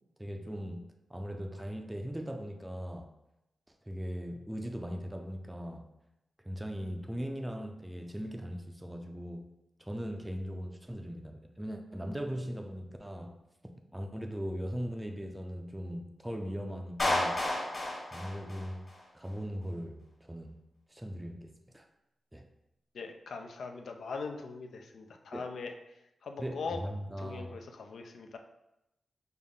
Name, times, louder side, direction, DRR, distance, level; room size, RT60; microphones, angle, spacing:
voice 1, 0.2-0.8 1.1-3.1 3.9-5.9 6.4-9.5 9.8-13.4 13.9-17.4 18.1-20.6 20.9-21.9 22.3-22.5 25.3-25.4 26.4-27.6, equal, 10° right, 4 dB, 0.4 m, -39 dB
Clapping, 17.0-19.0, left 1 dB, 40° left, 1.3 m, -31 dB
voice 2, 22.9-25.7 26.2-26.8 27.2-28.4, left 4 dB, 80° left, 4 dB, 0.4 m, -41 dB
5.3 x 2.1 x 3.6 m, 0.89 s
cardioid pair, 60°, 0 cm